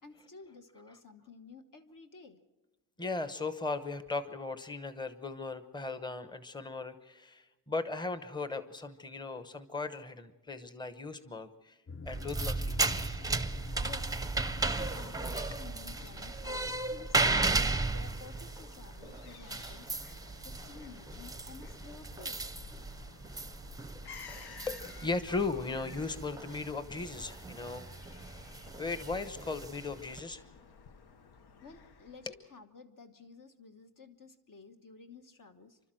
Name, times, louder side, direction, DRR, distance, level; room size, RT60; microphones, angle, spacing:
voice 1, 0.0-2.4 13.8-14.1 14.6-17.5 17.9-19.9 20.4-22.5 31.6-35.8, left 4 dB, 60° left, 6 dB, 1.4 m, -53 dB
voice 2, 3.0-11.8 12.0-12.8 24.7-27.9 28.8-30.5, left 3 dB, 10° left, 11 dB, 0.9 m, -37 dB
sound 1, 11.9-16.7, left 3 dB, 35° left, 0.7 m, -46 dB
sound 2, 12.1-30.2, right 3 dB, 10° right, 0.6 m, -35 dB
Fowl / Gull seagull, 12.5-32.4, left 5 dB, 85° left, 1.1 m, -53 dB
29.5 x 12.5 x 7.7 m, 1.1 s
wide cardioid pair, 165°, 37 cm